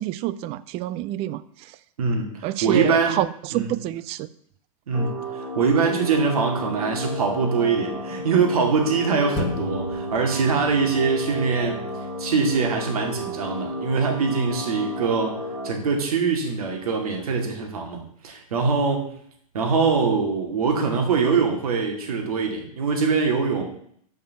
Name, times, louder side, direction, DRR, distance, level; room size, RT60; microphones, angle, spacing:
voice 1, 0.0-1.8 2.4-4.3, right 14 dB, 35° right, 16 dB, 0.4 m, -28 dB
voice 2, 2.0-3.2 3.5-3.7 4.9-11.9 12.2-19.1 19.5-23.6, right 5 dB, 75° right, 2 dB, 2.4 m, -23 dB
sound 1, 4.9-15.7, equal, 5° right, 2.2 m, -33 dB
sound 2, 9.3-18.2 18.6-18.7, left 2 dB, 55° left, 1.4 m, -39 dB
6.9 x 5.4 x 7.0 m, 0.64 s
hypercardioid pair, 120°, 19 cm